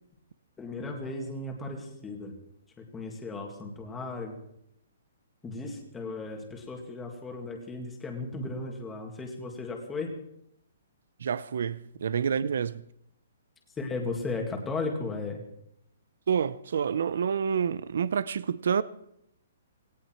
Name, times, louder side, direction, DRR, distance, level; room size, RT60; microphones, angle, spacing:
voice 1, 0.6-2.3 2.8-4.4 5.4-10.1 13.8-15.4, left 3 dB, 10° left, 2.1 m, -35 dB
voice 2, 11.2-12.8 16.3-18.8, right 7 dB, 65° right, 0.7 m, -28 dB
18.0 x 17.5 x 4.5 m
hypercardioid pair, 170°, 0 cm